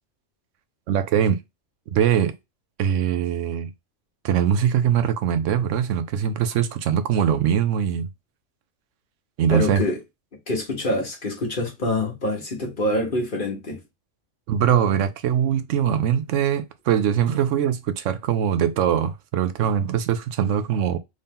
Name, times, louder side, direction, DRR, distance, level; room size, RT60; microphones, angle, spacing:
voice 1, 0.9-1.4 1.9-2.3 2.8-3.7 4.2-8.1 9.4-9.8 14.5-21.0, right 9 dB, 85° right, 1.0 m, -22 dB
voice 2, 9.5-10.0 10.5-13.8, left 1 dB, 45° left, 1.5 m, -25 dB
3.8 x 2.7 x 3.5 m
omnidirectional pair, 1.2 m